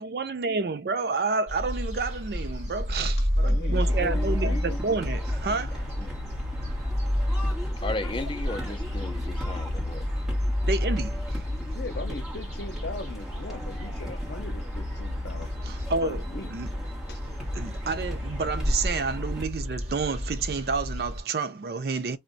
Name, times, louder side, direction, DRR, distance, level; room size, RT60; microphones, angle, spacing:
voice 1, 0.0-5.9 10.7-11.4 15.6-16.2 16.5-16.7 17.2-22.2, right 4 dB, 60° right, 0.4 m, -30 dB
sound 1, 1.5-21.2, left 1 dB, 40° right, 1.1 m, -30 dB
voice 2, 3.4-4.8 11.7-15.5 16.0-16.5 17.1-17.2, left 3 dB, 70° left, 0.7 m, -38 dB
sound 2, 3.7-19.4, equal, 5° right, 1.2 m, -40 dB
voice 3, 7.8-10.0, left 2 dB, 30° left, 0.4 m, -35 dB
2.5 x 2.1 x 3.8 m
head